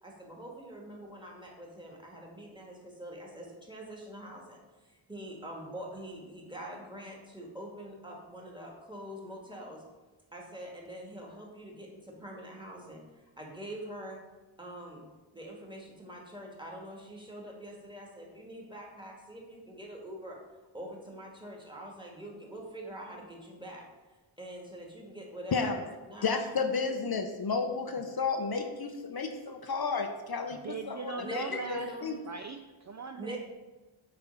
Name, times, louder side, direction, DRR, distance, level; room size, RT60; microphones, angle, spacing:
voice 1, 0.0-9.8 10.3-14.2 14.6-15.1 15.3-20.4 20.7-23.9 24.4-25.7 26.1-26.3 31.2-32.1 33.2-33.4, right 1 dB, 10° right, -1 dB, 1.6 m, -44 dB
voice 2, 25.5-25.8 26.2-32.2, left 4 dB, 50° left, 5 dB, 0.6 m, -32 dB
voice 3, 30.5-31.9 32.3-33.4, right 5 dB, 40° right, 5 dB, 0.4 m, -40 dB
8.4 x 3.4 x 5.3 m, 1.2 s
wide cardioid pair, 115°, 48 cm